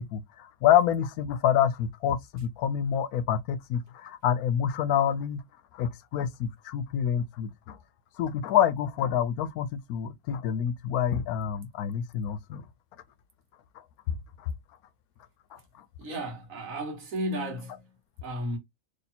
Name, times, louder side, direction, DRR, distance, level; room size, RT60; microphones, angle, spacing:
voice 1, 0.0-5.4 5.7-7.8 8.2-12.6 14.1-14.5 15.5-15.8, left 9 dB, 90° left, 1.1 m, -27 dB
voice 2, 16.0-17.9 18.2-18.6, equal, 65° right, 1.6 m, -34 dB
3.2 x 2.8 x 4.2 m
omnidirectional pair, 1.5 m